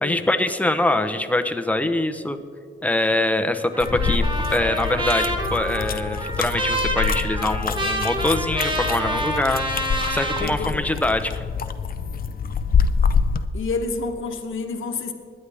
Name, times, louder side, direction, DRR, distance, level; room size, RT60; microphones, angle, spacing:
voice 1, 0.0-2.4 2.8-4.2 4.5-9.6 10.1-11.4, left 1 dB, 5° left, 7 dB, 0.8 m, -23 dB
Trumpet, 3.7-10.5, right 1 dB, 25° right, 1.7 m, -27 dB
sound 1, 3.8-13.5, left 6 dB, 45° left, 0.6 m, -26 dB
voice 2, 10.4-10.9 13.5-15.1, left 4 dB, 80° left, 4 dB, 1.1 m, -29 dB
21.0 x 9.7 x 3.5 m, 2.1 s
wide cardioid pair, 105°, 21 cm